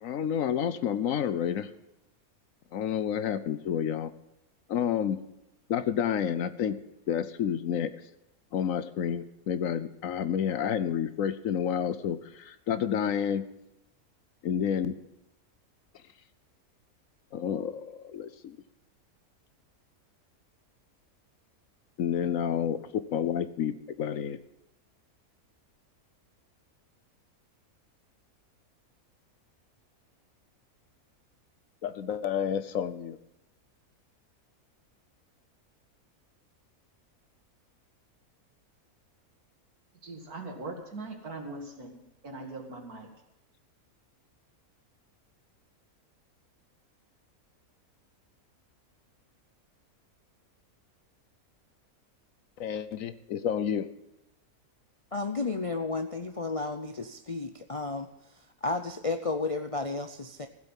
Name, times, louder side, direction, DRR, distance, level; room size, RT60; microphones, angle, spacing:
voice 1, 0.0-1.7 2.7-4.1 4.7-5.2 5.7-6.8 7.1-7.9 8.5-13.4 14.4-14.9 17.3-18.6 22.0-22.8 23.1-24.4 31.8-33.2 52.6-53.9, left 8 dB, 65° left, 13 dB, 1.1 m, -29 dB
voice 2, 40.0-43.1, right 2 dB, 85° right, 2 dB, 2.7 m, -41 dB
voice 3, 55.1-58.1 58.6-60.5, left 3 dB, 45° left, 6 dB, 0.4 m, -32 dB
15.0 x 8.0 x 7.2 m, 0.85 s
omnidirectional pair, 1.6 m